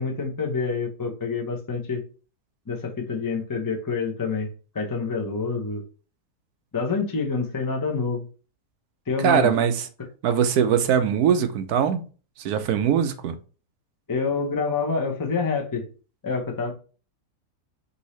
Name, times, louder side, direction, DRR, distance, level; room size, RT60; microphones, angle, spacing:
voice 1, 0.0-2.0 2.7-4.5 4.7-5.8 6.7-8.2 9.1-9.5 14.1-15.9 16.2-16.7, left 4 dB, 25° left, 0.4 m, -27 dB
voice 2, 9.2-9.9 10.2-12.0 12.4-13.3, right 8 dB, 75° right, 1.1 m, -21 dB
5.3 x 2.8 x 3.1 m
omnidirectional pair, 1.7 m